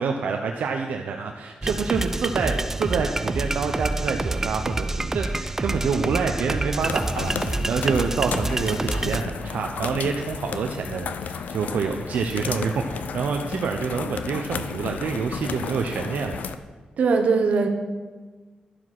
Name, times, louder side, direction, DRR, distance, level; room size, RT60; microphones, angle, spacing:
voice 1, 0.0-16.4, right 5 dB, 85° right, 3 dB, 0.7 m, -27 dB
sound 1, 1.6-9.2, right 2 dB, 15° right, 0.4 m, -27 dB
sound 2, 6.8-16.5, left 6 dB, 80° left, 0.6 m, -33 dB
voice 2, 17.0-17.7, right 4 dB, 65° right, 5 dB, 1.2 m, -20 dB
12.0 x 7.4 x 6.0 m, 1.3 s
wide cardioid pair, 155°, 3 cm